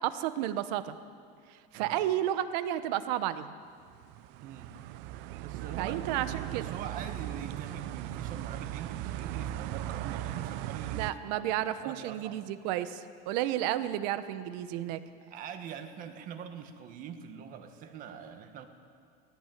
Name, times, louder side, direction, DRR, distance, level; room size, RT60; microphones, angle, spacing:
voice 1, 0.0-1.0 1.7-3.5 5.8-6.6 10.9-15.0, right 12 dB, 85° right, 12 dB, 1.1 m, -32 dB
sound 1, 3.9-11.1, right 13 dB, 60° right, 0.6 m, -38 dB
voice 2, 4.4-4.8 5.4-6.1 6.4-11.5 11.8-12.4 15.3-18.7, right 8 dB, 40° right, 7 dB, 1.6 m, -44 dB
17.0 x 17.0 x 9.2 m, 2.2 s
cardioid pair, 175°, 21 cm